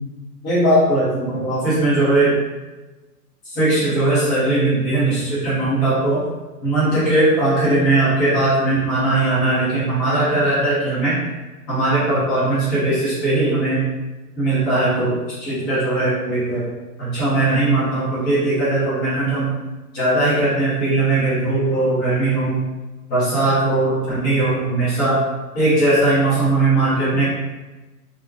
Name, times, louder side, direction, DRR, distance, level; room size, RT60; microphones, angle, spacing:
voice 1, 0.4-2.3 3.5-6.2 6.6-11.2 11.7-13.8 14.4-15.1 15.4-16.7 17.0-19.5 19.9-22.6 23.1-25.2 25.5-27.3, right 2 dB, 10° left, -11 dB, 0.4 m, -19 dB
3.8 x 2.1 x 2.6 m, 1.1 s
figure-of-eight pair, 115°, 47 cm